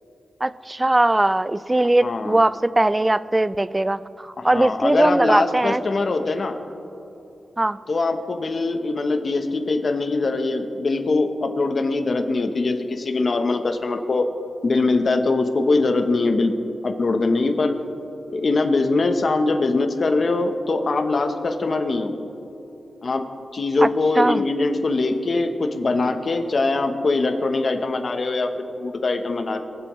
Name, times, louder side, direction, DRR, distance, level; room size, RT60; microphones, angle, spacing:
voice 1, 0.4-5.8 7.6-7.8 23.8-23.9 24.2-24.4, right 1 dB, 20° right, 16 dB, 0.3 m, -20 dB
voice 2, 2.0-2.4 4.4-6.6 7.9-14.3 14.6-16.5 16.8-17.8 18.3-22.1 23.0-23.2 23.5-29.6, left 3 dB, 50° left, 6 dB, 0.9 m, -22 dB
23.5 x 8.0 x 3.2 m, 2.9 s
wide cardioid pair, 95°, 0 cm